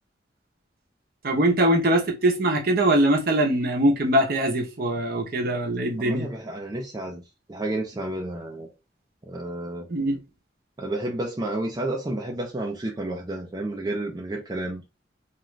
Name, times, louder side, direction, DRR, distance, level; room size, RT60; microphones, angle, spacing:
voice 1, 1.2-6.3 9.9-10.2, right 1 dB, 55° right, 0.7 m, -22 dB
voice 2, 6.0-7.2 7.5-8.7 9.2-9.9 10.8-14.8, right 1 dB, 20° right, 0.4 m, -31 dB
2.4 x 2.3 x 3.1 m
head